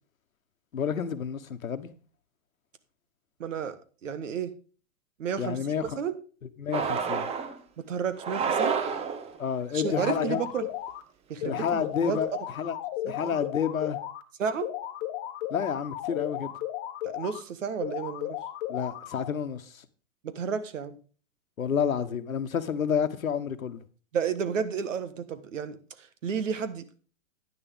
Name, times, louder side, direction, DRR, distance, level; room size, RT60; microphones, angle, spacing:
voice 1, 0.7-1.9 5.4-6.0 6.6-7.3 9.4-10.4 11.4-12.3 12.6-12.8 13.1-14.0 15.5-16.5 18.7-19.8 21.6-23.8, left 7 dB, 80° left, 1.2 m, -29 dB
voice 2, 3.4-3.7 4.0-4.5 5.2-5.6 6.0-6.2 7.8-8.7 9.7-10.7 11.3-11.8 12.1-12.2 13.0-13.4 14.4-14.7 17.0-18.4 20.2-21.0 24.1-25.8 26.2-26.8, right 7 dB, 65° right, 1.5 m, -31 dB
sound 1, 6.7-7.6 8.2-9.4, right 6 dB, 15° right, 0.8 m, -29 dB
sound 2, 9.8-11.0 11.4-14.2 14.6-17.4 17.8-19.4, left 12 dB, 35° left, 1.2 m, -35 dB
10.0 x 10.0 x 3.5 m
hypercardioid pair, 120°, 41 cm